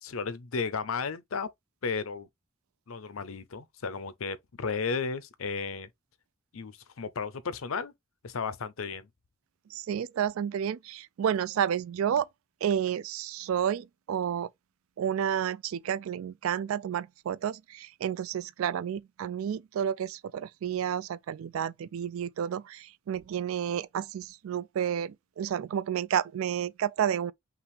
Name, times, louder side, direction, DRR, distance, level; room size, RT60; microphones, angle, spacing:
voice 1, 0.0-1.5 1.8-2.3 2.9-5.9 6.5-7.9 8.2-9.1, left 5 dB, 85° left, 0.6 m, -34 dB
voice 2, 9.7-12.3 12.6-14.5 15.0-27.3, right 9 dB, 90° right, 0.3 m, -31 dB
5.7 x 2.5 x 3.2 m
head